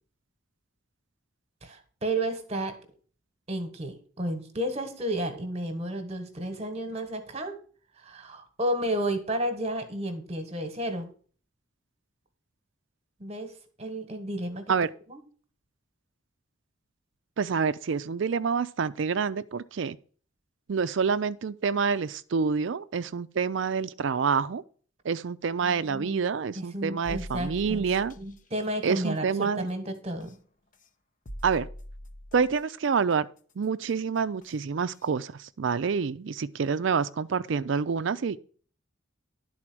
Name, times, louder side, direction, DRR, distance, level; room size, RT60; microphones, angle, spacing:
voice 1, 1.6-2.8 3.5-7.6 8.0-11.1 13.2-13.5 13.8-14.7 15.1-15.2 25.6-26.3 26.5-27.8 28.2-30.4, right 1 dB, 30° right, 1.3 m, -32 dB
voice 2, 17.4-20.0 20.7-24.6 25.0-28.1 28.8-29.7 31.4-31.7 32.3-33.3 33.6-38.4, right 5 dB, 65° right, 0.4 m, -27 dB
sound 1, 27.0-28.3 30.2-30.3 31.3-32.6 34.4-34.5 35.0-35.1, equal, 40° left, 0.7 m, -42 dB
11.0 x 4.2 x 6.0 m
head